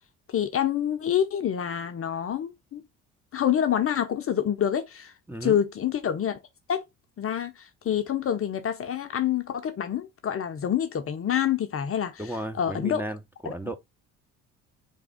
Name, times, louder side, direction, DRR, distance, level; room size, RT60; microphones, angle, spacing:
voice 1, 0.3-2.8 3.3-5.1 5.4-6.4 6.7-6.8 7.2-12.2 12.5-13.0 13.4-13.7, left 9 dB, 35° left, 0.8 m, -27 dB
voice 2, 12.2-13.7, right 1 dB, 5° right, 1.0 m, -34 dB
4.1 x 3.5 x 3.6 m
hypercardioid pair, 55°, 37 cm